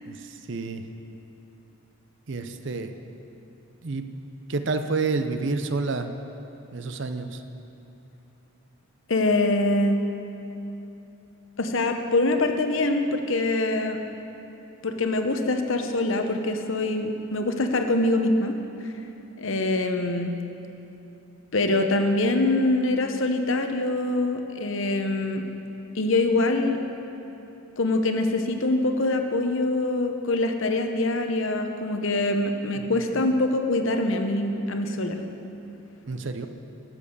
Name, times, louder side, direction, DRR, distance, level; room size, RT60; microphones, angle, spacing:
voice 1, 0.1-0.8 2.3-2.9 3.8-4.1 4.5-6.1 6.7-7.4 32.8-32.9 36.1-36.5, right 3 dB, 60° right, 8 dB, 0.6 m, -29 dB
voice 2, 9.1-10.0 11.6-14.0 14.8-18.6 19.4-20.3 21.5-25.4 25.9-26.8 27.8-35.2, left 2 dB, 65° left, 6 dB, 0.9 m, -24 dB
11.5 x 7.6 x 6.7 m, 3.0 s
head